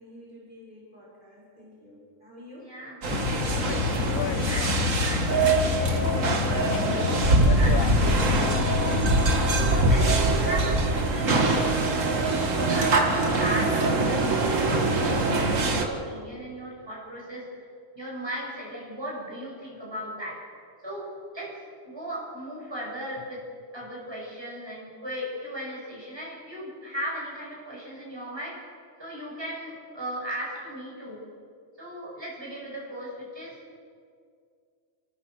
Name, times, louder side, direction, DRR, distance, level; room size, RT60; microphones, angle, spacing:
voice 1, 0.0-2.7, left 1 dB, 35° right, -7 dB, 5.9 m, -49 dB
voice 2, 2.6-3.0 3.5-9.0 9.4-12.3 12.6-17.6 17.9-20.4 20.8-21.5 21.8-23.4 23.7-28.6 29.0-31.2 31.8-33.6, equal, 20° right, -5 dB, 6.2 m, -37 dB
sound 1, 3.0-15.9, right 2 dB, 70° right, 2.0 m, -23 dB
sound 2, 3.1-10.0, left 10 dB, 90° left, 1.2 m, -29 dB
29.0 x 15.0 x 6.3 m, 2.2 s
omnidirectional pair, 1.4 m